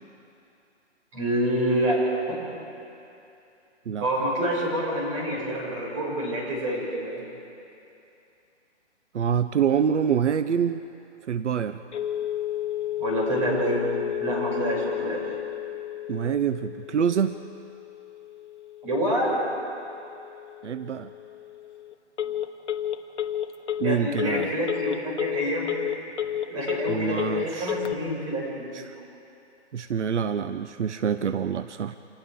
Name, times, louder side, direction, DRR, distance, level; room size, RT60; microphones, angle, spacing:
voice 1, 1.1-2.4 4.0-7.2 13.0-15.3 18.8-19.4 23.8-25.8 26.5-28.7, right 1 dB, 30° right, -5 dB, 6.3 m, -27 dB
voice 2, 9.1-10.8 11.3-11.8 16.1-17.4 20.6-21.1 23.8-24.5 26.9-27.8 28.7-28.9 29.7-32.0, right 7 dB, 80° right, 12 dB, 0.8 m, -26 dB
Telephone, 11.9-27.9, left 11 dB, 75° left, 1.3 m, -32 dB
29.5 x 27.0 x 3.8 m, 2.7 s
hypercardioid pair, 170°, 36 cm